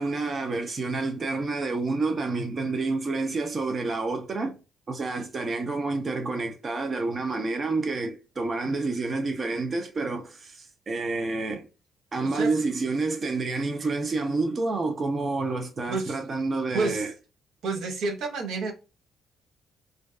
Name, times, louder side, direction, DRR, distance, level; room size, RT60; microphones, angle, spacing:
voice 1, 0.0-4.6 4.9-11.7 12.1-17.1, right 3 dB, 40° right, 0.5 m, -29 dB
voice 2, 12.2-12.7 15.9-16.2 16.7-17.1 17.6-18.7, right 3 dB, 80° right, 0.6 m, -30 dB
2.5 x 2.2 x 2.3 m
cardioid pair, 90°, 0 cm